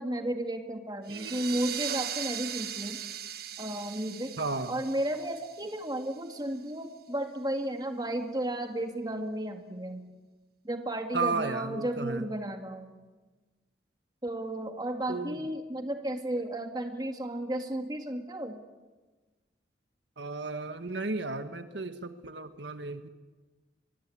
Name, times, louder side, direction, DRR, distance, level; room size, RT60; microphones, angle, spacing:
voice 1, 0.0-3.0 3.6-4.3 4.7-10.0 10.6-12.9 14.2-18.6, right 1 dB, 20° right, 5 dB, 2.1 m, -33 dB
sound 1, 1.1-6.4, right 9 dB, 55° right, 1.5 m, -39 dB
voice 2, 1.1-1.5 4.4-4.8 11.1-12.3 15.1-15.5 20.2-23.1, right 3 dB, 75° right, 9 dB, 1.4 m, -34 dB
24.5 x 22.5 x 8.7 m, 1.3 s
head